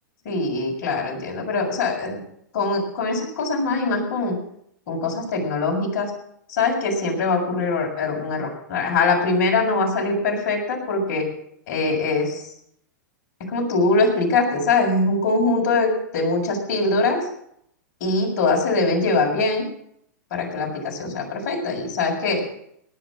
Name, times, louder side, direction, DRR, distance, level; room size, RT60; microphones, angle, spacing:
voice 1, 0.3-2.2 2.5-4.4 4.9-6.1 6.5-11.3 11.7-12.5 13.4-17.2 18.0-19.6 20.3-22.4, left 3 dB, 55° left, 0 dB, 6.9 m, -22 dB
19.0 x 9.8 x 6.3 m, 0.70 s
hypercardioid pair, 115°, 10 cm